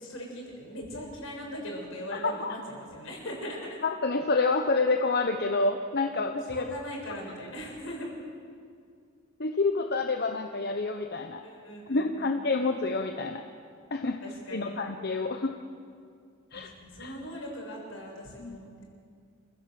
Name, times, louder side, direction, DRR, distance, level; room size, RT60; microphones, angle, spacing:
voice 1, 0.0-3.8 6.1-8.1 11.4-12.4 14.2-14.8 16.5-18.8, equal, 75° left, 0 dB, 6.7 m, -40 dB
voice 2, 2.1-2.6 4.0-6.7 9.4-11.4 11.9-13.4 13.9-14.2 14.5-15.5 16.5-16.7 17.0-17.1 18.4-18.6, left 3 dB, 50° left, 5 dB, 1.0 m, -28 dB
27.5 x 16.0 x 7.8 m, 2.3 s
head